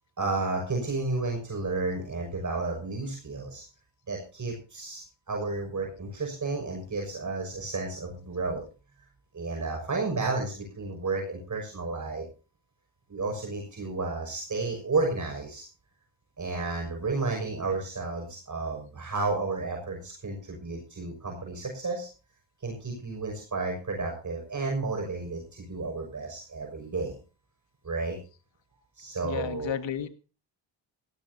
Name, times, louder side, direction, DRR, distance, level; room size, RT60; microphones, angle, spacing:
voice 1, 0.2-3.6 4.1-8.6 9.3-12.2 13.1-15.6 16.4-22.1 22.6-27.1 27.8-28.2 29.0-29.8, right 3 dB, 40° right, 1 dB, 6.2 m, -32 dB
voice 2, 29.2-30.1, left 9 dB, 70° left, 11 dB, 1.8 m, -32 dB
17.0 x 16.5 x 2.8 m, 0.33 s
cardioid pair, 75°, 47 cm